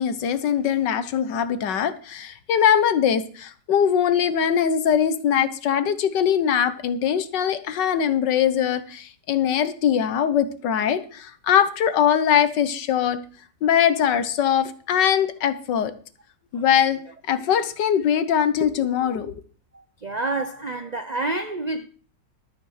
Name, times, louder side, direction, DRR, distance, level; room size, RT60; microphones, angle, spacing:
voice 1, 0.0-13.2 13.6-15.9 16.5-17.0 17.3-19.4, left 8 dB, 75° left, 1.7 m, -21 dB
voice 2, 19.7-21.9, right 2 dB, 70° right, 0.4 m, -28 dB
12.5 x 6.8 x 6.5 m
omnidirectional pair, 1.9 m